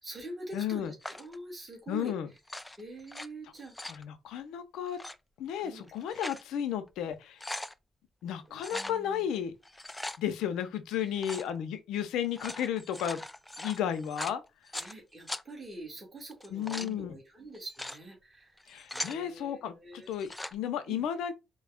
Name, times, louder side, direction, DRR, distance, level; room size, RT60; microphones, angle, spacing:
voice 1, 0.0-2.1 2.8-3.7 5.6-5.9 8.5-9.4 11.0-11.3 14.7-18.6 18.9-20.1 20.9-21.0, right 2 dB, 25° right, 2.0 m, -45 dB
voice 2, 0.5-0.9 1.9-2.3 3.8-5.0 5.4-7.4 8.2-9.5 10.2-13.2 13.6-14.4 16.5-17.2 18.7-21.3, left 9 dB, 85° left, 0.6 m, -33 dB
sound 1, 1.0-1.4 2.4-3.3 3.6-4.0 4.9-5.2 5.8-6.5 6.9-7.0 7.2-7.7 8.6-9.0 9.6-10.2 11.2-11.5 12.2-14.9 15.3-15.4 16.3-16.9 17.5-18.0 18.6-19.2 20.1-20.5, left 1 dB, 10° left, 0.3 m, -40 dB
4.4 x 2.3 x 3.4 m
cardioid pair, 90°, 0 cm